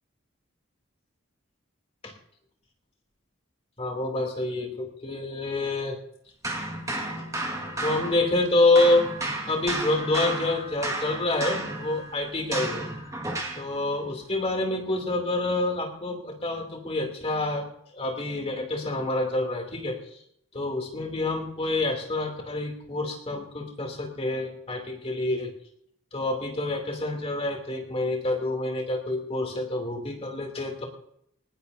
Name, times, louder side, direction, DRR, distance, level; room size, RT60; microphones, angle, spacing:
voice 1, 3.8-6.0 7.8-9.1 9.5-12.9 13.6-20.2 20.5-25.5 26.1-30.8, left 2 dB, 30° left, 1 dB, 2.9 m, -27 dB
sound 1, 6.4-8.5 8.8-13.7, right 1 dB, 15° right, 1.8 m, -33 dB
19.5 x 19.0 x 2.7 m, 0.72 s
head